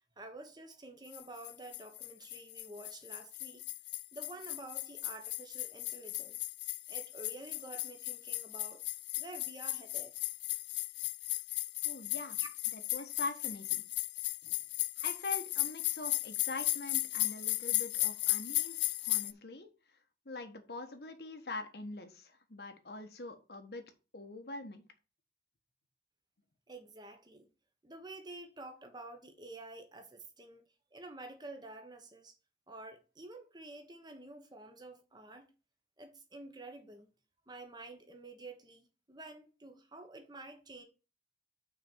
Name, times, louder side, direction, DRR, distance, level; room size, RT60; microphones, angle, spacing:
voice 1, 0.2-3.6 4.1-6.4 6.7-8.8 9.2-10.1 26.7-27.5 27.8-30.6 30.9-32.3 32.7-35.5 36.0-37.1 37.5-40.8, right 2 dB, 25° right, 1.3 m, -50 dB
sound 1, 1.1-19.3, left 19 dB, 85° left, 0.4 m, -36 dB
voice 2, 11.8-12.4 12.7-13.8 14.4-14.6 15.0-19.7 20.2-23.8 24.1-24.8, left 3 dB, 65° left, 1.4 m, -43 dB
6.0 x 4.4 x 6.2 m
head